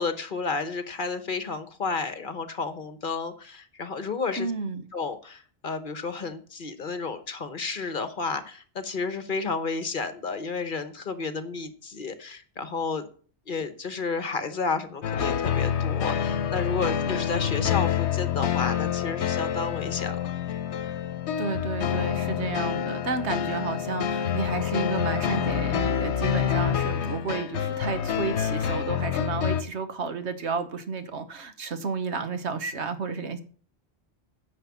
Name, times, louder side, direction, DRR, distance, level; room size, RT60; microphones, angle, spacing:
voice 1, 0.0-4.5 4.9-13.1 13.5-20.2, left 4 dB, 50° left, 1.2 m, -31 dB
voice 2, 4.4-4.8 21.4-33.4, right 4 dB, 80° right, 1.4 m, -32 dB
sound 1, 15.0-29.6, left 9 dB, 80° left, 1.1 m, -27 dB
10.0 x 6.0 x 7.1 m
omnidirectional pair, 1.1 m